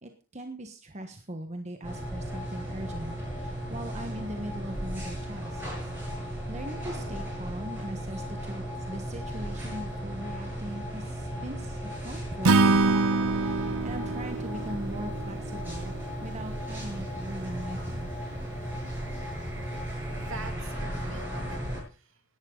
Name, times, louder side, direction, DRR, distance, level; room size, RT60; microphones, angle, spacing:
voice 1, 0.0-5.6 6.2-18.1, right 1 dB, 30° right, 5 dB, 1.3 m, -40 dB
sound 1, 1.8-21.8, equal, 10° right, 7.5 m, -35 dB
Acoustic guitar / Strum, 12.4-15.7, right 3 dB, 85° right, 0.8 m, -25 dB
voice 2, 19.7-22.2, right 3 dB, 65° right, 6 dB, 2.5 m, -45 dB
17.0 x 12.0 x 3.9 m, 0.36 s
head